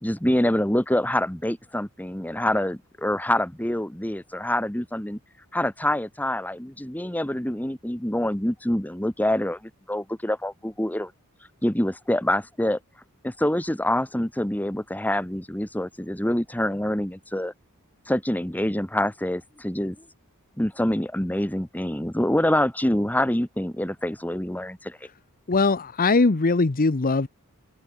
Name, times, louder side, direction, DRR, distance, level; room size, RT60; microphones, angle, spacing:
voice 1, 0.0-5.2 5.5-11.1 11.6-12.8 13.2-17.5 18.1-20.0 20.6-25.0, left 1 dB, 5° left, 1.6 m, -26 dB
voice 2, 25.5-27.3, left 3 dB, 40° left, 0.8 m, -21 dB
open air
head